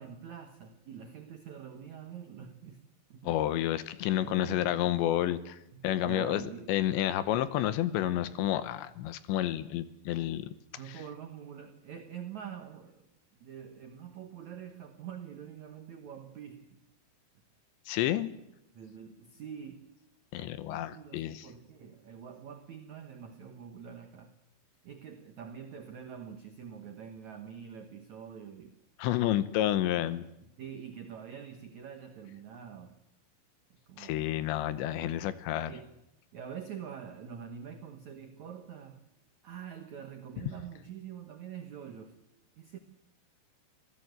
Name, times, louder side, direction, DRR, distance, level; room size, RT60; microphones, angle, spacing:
voice 1, 0.0-2.8 3.1-3.4 4.2-5.0 5.7-6.7 10.3-13.1 13.4-16.8 18.7-19.9 20.7-24.3 24.8-28.8 30.6-33.0 33.9-34.3 35.7-36.0 36.3-39.0 39.4-42.2 42.5-42.8, right 8 dB, 80° right, 1.7 m, -45 dB
voice 2, 3.2-5.6 5.8-6.4 6.7-10.4 17.9-18.3 20.3-21.5 29.0-30.3 34.0-35.7, left 12 dB, 75° left, 3.1 m, -30 dB
26.5 x 17.0 x 8.0 m
omnidirectional pair, 5.4 m